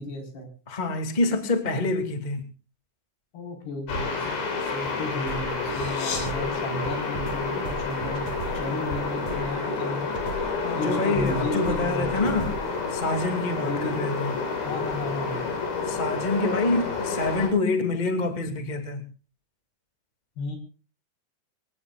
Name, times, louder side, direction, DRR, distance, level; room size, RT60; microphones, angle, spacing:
voice 1, 0.0-0.5 3.3-4.4 4.7-10.1 10.8-12.3 13.6-13.9 14.7-15.4 20.4-20.6, left 2 dB, 70° left, 6.5 m, -33 dB
voice 2, 0.7-2.5 10.6-12.5 12.9-14.3 15.9-19.1, left 2 dB, 15° left, 1.5 m, -26 dB
sound 1, 3.9-17.5, left 4 dB, 90° left, 6.1 m, -29 dB
sound 2, 5.3-6.7 7.2-10.7 11.2-13.3, right 4 dB, 60° right, 2.2 m, -37 dB
24.5 x 18.0 x 2.4 m
omnidirectional pair, 4.9 m